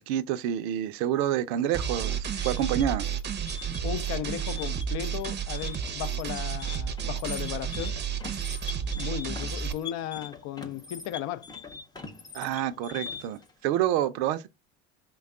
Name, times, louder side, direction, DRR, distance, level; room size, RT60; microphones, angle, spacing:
voice 1, 0.0-3.1 12.3-14.5, right 11 dB, 75° right, 0.5 m, -28 dB
sound 1, 1.7-9.7, right 8 dB, 30° right, 0.6 m, -31 dB
sound 2, 2.1-13.4, left 5 dB, 10° left, 0.6 m, -42 dB
voice 2, 3.8-7.9 8.9-11.5, left 12 dB, 60° left, 0.5 m, -35 dB
3.4 x 2.3 x 3.6 m
supercardioid pair, 95°, 33 cm